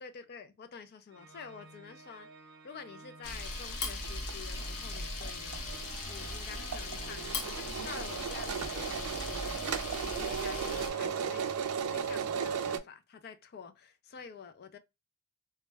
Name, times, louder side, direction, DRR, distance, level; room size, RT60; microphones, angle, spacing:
voice 1, 0.0-2.3 2.6-5.6 6.1-9.6 10.0-11.5 11.8-14.8, left 6 dB, 45° left, 0.4 m, -48 dB
Organ, 1.1-11.7, right 3 dB, 55° right, 0.8 m, -54 dB
Camera, 3.2-10.9, left 3 dB, 85° left, 0.7 m, -39 dB
sound 1, 4.0-4.3 4.6-4.7 4.9-12.8, right 6 dB, 70° right, 0.4 m, -36 dB
2.3 x 2.1 x 3.1 m
head